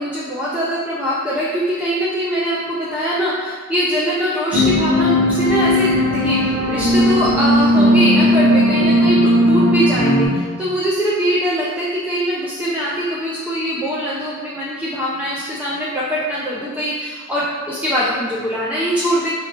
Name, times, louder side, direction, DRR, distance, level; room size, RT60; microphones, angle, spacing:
voice 1, 0.0-19.3, equal, 5° right, -8 dB, 0.4 m, -22 dB
sound 1, 4.5-10.3, equal, 55° right, 1.2 m, -16 dB
6.2 x 2.7 x 2.9 m, 1.5 s
head